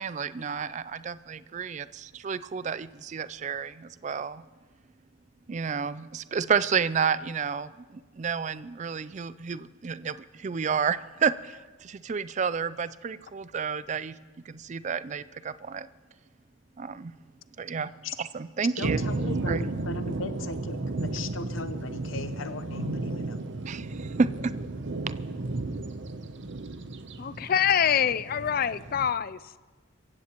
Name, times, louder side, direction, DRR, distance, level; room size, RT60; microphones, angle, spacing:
voice 1, 0.0-4.4 5.5-14.2 14.5-15.9 16.8-17.1 17.6-17.9 18.2-19.0 19.5-19.6 23.7-24.5 25.0-25.2, right 6 dB, 35° right, 15 dB, 0.3 m, -30 dB
voice 2, 18.8-23.4, left 3 dB, 75° left, 10 dB, 0.9 m, -37 dB
sound 1, 18.8-29.1, right 2 dB, 60° right, 0.7 m, -33 dB
voice 3, 27.2-29.6, left 8 dB, 45° left, 16 dB, 0.4 m, -25 dB
25.5 x 15.5 x 3.0 m, 1.3 s
head